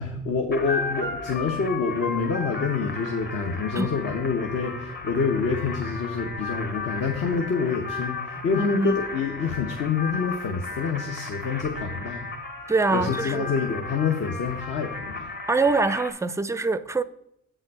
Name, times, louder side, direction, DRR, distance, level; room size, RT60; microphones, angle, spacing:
voice 1, 0.0-12.3 12.9-15.3, left 5 dB, 55° left, 1.0 m, -27 dB
sound 1, 0.5-16.1, left 3 dB, 35° left, 1.4 m, -35 dB
voice 2, 8.6-9.0 12.7-13.5 15.5-17.0, right 3 dB, 10° right, 0.4 m, -24 dB
7.7 x 5.6 x 4.7 m
cardioid pair, 90°, 30 cm